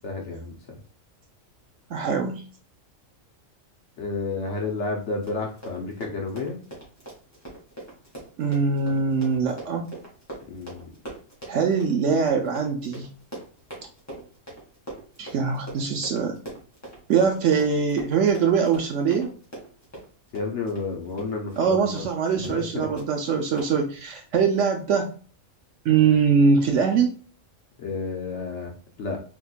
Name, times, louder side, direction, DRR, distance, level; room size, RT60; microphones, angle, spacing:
voice 1, 0.0-0.5 4.0-6.6 10.5-10.9 20.3-22.0 22.4-22.9 27.8-28.7 29.0-29.2, left 3 dB, 65° left, 0 dB, 1.2 m, -31 dB
voice 2, 1.9-2.4 8.4-9.9 11.5-13.1 15.2-16.4 17.1-19.3 21.6-25.1 25.8-27.2, right 6 dB, 70° right, 3 dB, 1.0 m, -22 dB
Run, 5.1-21.7 22.0-22.1 22.4-22.7 23.0-23.1 23.6-23.7, right 2 dB, 10° left, 2.0 m, -42 dB
4.5 x 3.7 x 2.4 m, 0.39 s
omnidirectional pair, 1.4 m